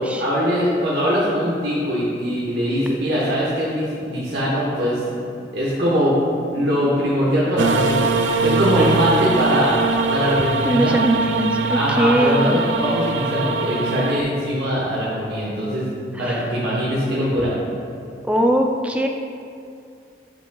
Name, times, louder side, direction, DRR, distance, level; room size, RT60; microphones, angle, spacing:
voice 1, 0.0-5.2 5.5-6.2 6.5-9.7 10.1-10.9 11.7-15.9 16.2-17.5, equal, 60° right, -8 dB, 1.1 m, -21 dB
sound 1, 7.6-14.2, right 3 dB, 85° right, 0.4 m, -22 dB
voice 2, 10.6-12.6 16.1-16.5 17.4-17.5 18.2-19.1, equal, 5° right, 3 dB, 0.4 m, -21 dB
11.0 x 5.2 x 2.3 m, 2.5 s
head